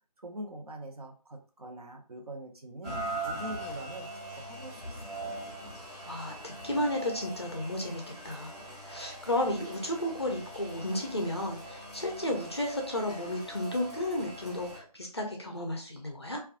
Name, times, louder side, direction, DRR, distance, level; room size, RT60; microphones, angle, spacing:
voice 1, 0.2-5.3, right 1 dB, 65° right, 3 dB, 0.7 m, -44 dB
Rain, 2.8-14.8, right 1 dB, 5° left, 0.7 m, -41 dB
voice 2, 6.1-8.6 8.8-16.4, left 1 dB, 40° left, 1 dB, 0.4 m, -33 dB
2.4 x 2.3 x 2.4 m, 0.38 s
figure-of-eight pair, 160°, 20 cm